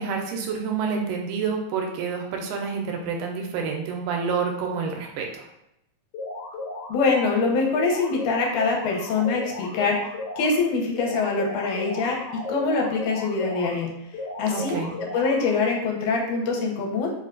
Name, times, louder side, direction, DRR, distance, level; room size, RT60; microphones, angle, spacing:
voice 1, 0.0-5.4 14.5-15.0, right 5 dB, 85° right, 1 dB, 2.2 m, -28 dB
sound 1, 6.1-7.3 7.7-10.5 10.9-13.7 14.1-15.7, left 2 dB, 65° left, 1.6 m, -35 dB
voice 2, 6.9-10.0 10.4-12.2 12.5-13.9 14.4-14.8 15.1-17.1, left 4 dB, 85° left, 0 dB, 2.1 m, -24 dB
4.9 x 2.2 x 2.4 m, 0.81 s
omnidirectional pair, 3.6 m